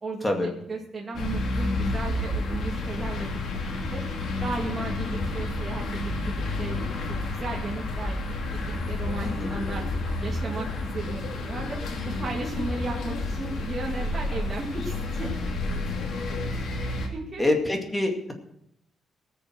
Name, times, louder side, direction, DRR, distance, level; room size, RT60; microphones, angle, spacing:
voice 1, 0.0-4.0 4.4-6.8 7.1-9.8 10.2-11.8 12.0-15.4 17.1-17.4, right 3 dB, 30° right, -3 dB, 2.3 m, -35 dB
sound 1, 1.1-17.1, left 2 dB, 65° left, 2.8 m, -30 dB
voice 2, 9.2-9.6 17.4-18.3, left 1 dB, 10° left, 3 dB, 2.2 m, -26 dB
19.0 x 7.0 x 6.1 m, 0.75 s
cardioid pair, 125°, 0 cm